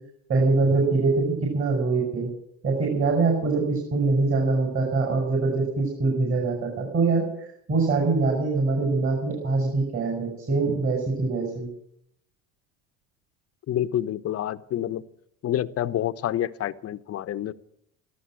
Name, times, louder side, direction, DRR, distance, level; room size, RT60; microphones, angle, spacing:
voice 1, 0.3-2.3 2.6-7.3 7.7-11.7, right 3 dB, 35° right, 0 dB, 6.1 m, -23 dB
voice 2, 13.7-15.0 15.4-17.5, left 11 dB, 40° left, 13 dB, 0.9 m, -28 dB
14.0 x 12.5 x 7.5 m, 0.73 s
supercardioid pair, 95°, 37 cm